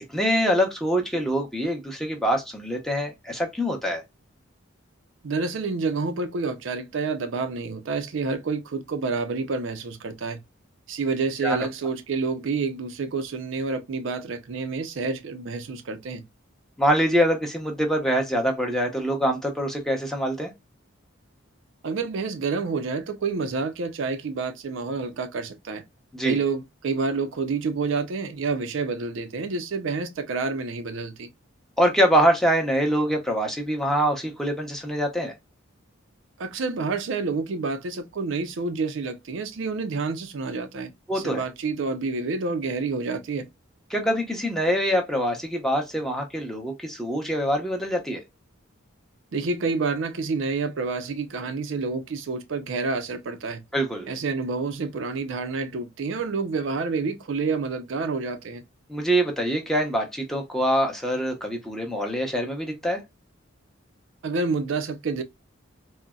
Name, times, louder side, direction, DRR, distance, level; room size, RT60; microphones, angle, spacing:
voice 1, 0.1-4.0 11.4-11.7 16.8-20.5 26.1-26.4 31.8-35.3 41.1-41.4 43.9-48.2 53.7-54.1 58.9-63.0, equal, ahead, 0.6 m, -24 dB
voice 2, 5.2-10.4 10.9-16.2 21.8-25.8 26.2-31.3 36.4-43.5 49.3-53.6 54.1-58.6 64.2-65.2, right 4 dB, 65° right, 0.4 m, -28 dB
3.8 x 2.1 x 2.2 m
head